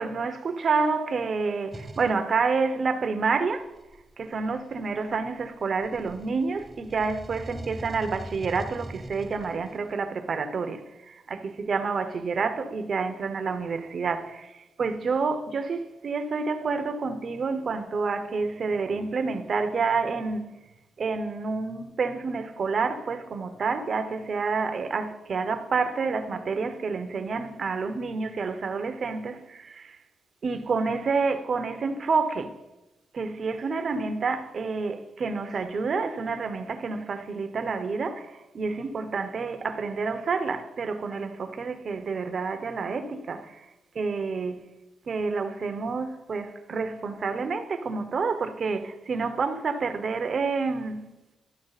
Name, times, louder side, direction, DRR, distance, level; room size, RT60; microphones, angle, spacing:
voice 1, 0.0-3.7 4.2-14.5 14.8-20.5 21.0-30.0 30.4-32.5 33.1-43.7 43.9-44.6 45.1-51.1, right 4 dB, 55° right, 0.9 m, -28 dB
sound 1, 1.7-2.2 3.5-5.4 5.8-10.0, right 1 dB, 15° right, 0.8 m, -42 dB
12.5 x 6.1 x 4.1 m
cardioid pair, 80°, 0 cm